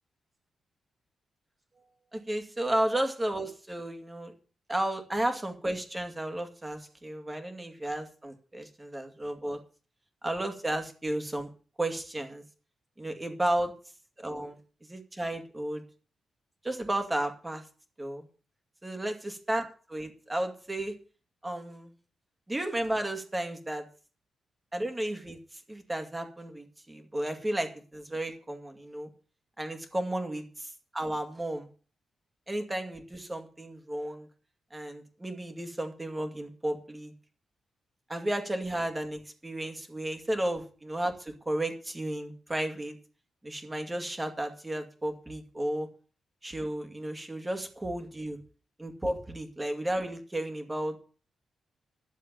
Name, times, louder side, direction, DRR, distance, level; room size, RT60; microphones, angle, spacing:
voice 1, 2.1-4.3 4.7-9.6 10.2-11.5 11.8-12.4 13.0-13.7 14.2-15.8 16.6-17.7 18.0-18.3 18.8-21.0 21.4-21.9 22.5-23.9 24.7-29.1 29.6-31.7 32.5-34.3 34.7-37.1 38.1-43.0 43.4-45.9 46.4-48.4 48.8-51.0, right 1 dB, 15° right, 5 dB, 2.2 m, -33 dB
11.5 x 7.4 x 7.5 m, 0.38 s
cardioid pair, 120°, 0 cm